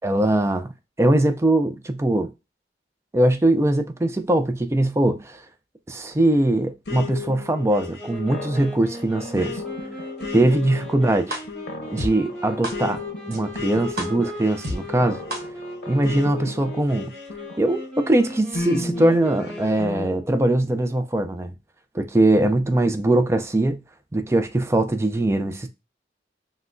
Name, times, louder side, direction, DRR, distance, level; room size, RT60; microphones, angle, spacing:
voice 1, 0.0-0.7 1.0-2.3 3.1-5.4 5.9-9.6 10.3-11.2 11.9-13.0 13.3-15.2 15.9-17.1 17.6-21.5 21.9-23.8 24.1-25.7, right 1 dB, 15° right, 0.3 m, -21 dB
sound 1, 6.9-17.9 18.5-20.1, left 3 dB, 60° left, 0.8 m, -34 dB
Wind instrument woodwind instrument, 8.0-20.4, equal, 5° left, 1.3 m, -38 dB
sound 2, 11.3-11.4 12.0-12.1 12.6-12.7 13.3-13.4 14.0-14.1 14.6-14.8 15.3-15.4, equal, 60° right, 1.0 m, -28 dB
5.7 x 2.1 x 2.5 m
head